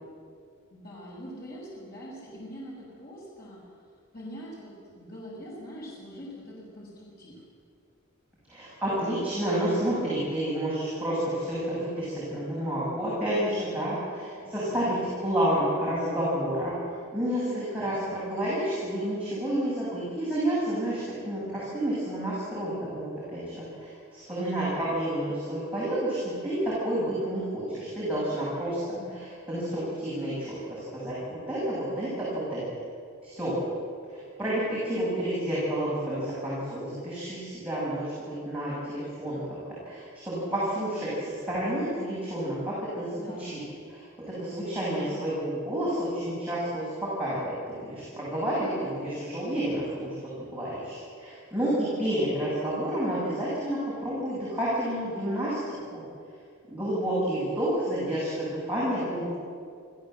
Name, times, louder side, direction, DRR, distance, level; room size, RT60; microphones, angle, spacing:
voice 1, 0.7-3.6 4.1-7.4 14.4-15.2 28.9-29.2 43.1-43.8 45.0-45.3, equal, 45° left, -5 dB, 6.3 m, -43 dB
voice 2, 8.5-15.0 15.2-16.7 17.1-28.8 29.1-32.6 33.2-33.5 34.1-39.4 39.8-43.6 43.9-50.1 50.4-56.0 56.7-59.3, right 1 dB, 5° right, -10 dB, 7.2 m, -30 dB
26.5 x 16.5 x 7.9 m, 2.2 s
head